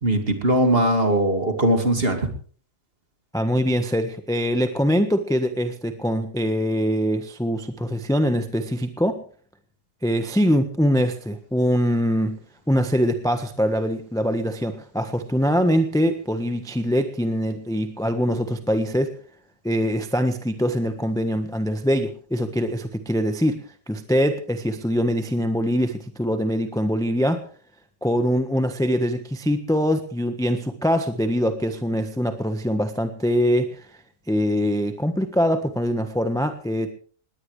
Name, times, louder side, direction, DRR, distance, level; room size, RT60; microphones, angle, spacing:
voice 1, 0.0-2.3, right 1 dB, 30° right, 6 dB, 2.6 m, -20 dB
voice 2, 3.3-9.2 10.0-12.4 12.7-19.1 19.6-23.6 23.9-27.4 28.0-33.9 34.3-36.9, equal, ahead, 7 dB, 1.1 m, -23 dB
20.0 x 18.5 x 3.4 m, 0.42 s
omnidirectional pair, 1.9 m